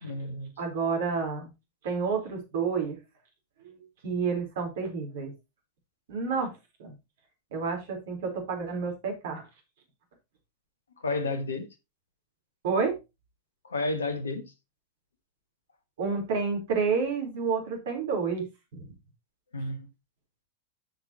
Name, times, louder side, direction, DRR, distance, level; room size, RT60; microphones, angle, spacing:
voice 1, 0.0-0.5 11.0-11.7 13.6-14.5 19.5-19.9, left 2 dB, 70° left, 1.9 m, -31 dB
voice 2, 0.6-1.5 1.8-3.0 3.6-3.7 4.0-5.3 6.1-6.5 6.8-6.9 7.5-9.4 12.6-12.9 16.0-18.4 18.7-18.9, right 5 dB, 55° right, 4.2 m, -29 dB
13.5 x 6.2 x 3.0 m
figure-of-eight pair, 90°, 0 cm